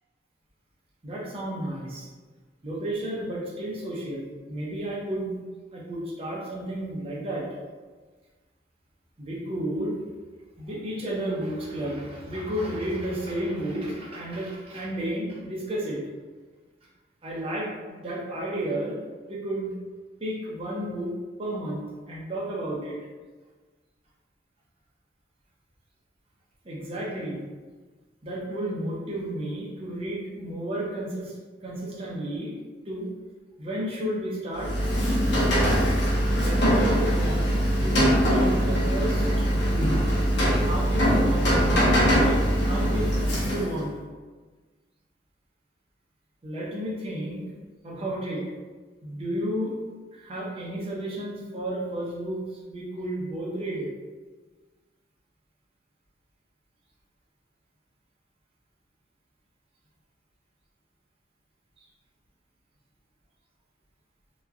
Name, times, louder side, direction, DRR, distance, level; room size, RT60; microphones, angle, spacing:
voice 1, 1.0-2.1 2.6-4.2 4.5-5.4 5.7-7.5 9.2-10.0 10.6-16.0 17.2-19.0 19.3-19.8 20.2-21.1 21.4-23.0 26.6-27.4 28.2-31.4 31.6-32.5 32.9-33.1 33.6-34.7 36.4-40.0 40.6-43.1 43.4-43.9 46.4-47.5 47.8-48.4 49.0-49.7 50.1-53.9 61.8-61.9, right 1 dB, 35° right, -5 dB, 0.6 m, -32 dB
Rain, 34.5-43.8, equal, 85° left, 0.8 m, -22 dB
2.9 x 2.3 x 2.3 m, 1.4 s
head